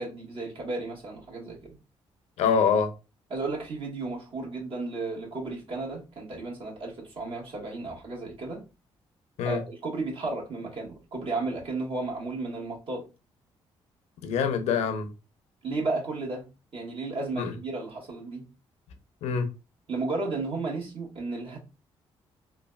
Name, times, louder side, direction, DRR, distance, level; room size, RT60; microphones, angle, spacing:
voice 1, 0.0-1.8 3.3-8.6 9.4-13.0 15.6-16.4 16.7-18.5 19.9-21.6, right 3 dB, 55° right, 1.3 m, -33 dB
voice 2, 2.4-2.9 9.4-9.6 14.2-15.1 17.4-17.5 19.2-19.5, left 6 dB, 80° left, 0.5 m, -25 dB
3.2 x 2.2 x 2.2 m
supercardioid pair, 65°, 11 cm